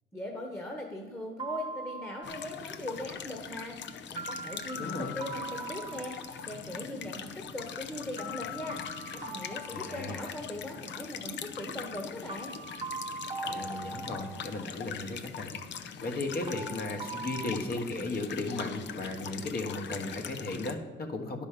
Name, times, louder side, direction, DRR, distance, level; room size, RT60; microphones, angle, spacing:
voice 1, 0.1-8.8 9.1-12.5, left 1 dB, 15° left, 1 dB, 1.2 m, -40 dB
sound 1, 1.4-2.5 4.2-6.5 8.2-10.5 12.3-14.6 16.5-17.5, right 2 dB, 25° right, 1.0 m, -41 dB
sound 2, 2.2-20.8, left 7 dB, 65° left, 0.7 m, -42 dB
voice 2, 4.7-5.2 9.7-10.2 13.4-15.5 16.0-21.4, left 2 dB, 50° left, 3 dB, 1.3 m, -35 dB
10.0 x 5.3 x 6.7 m, 1.3 s
cardioid pair, 90°, 20 cm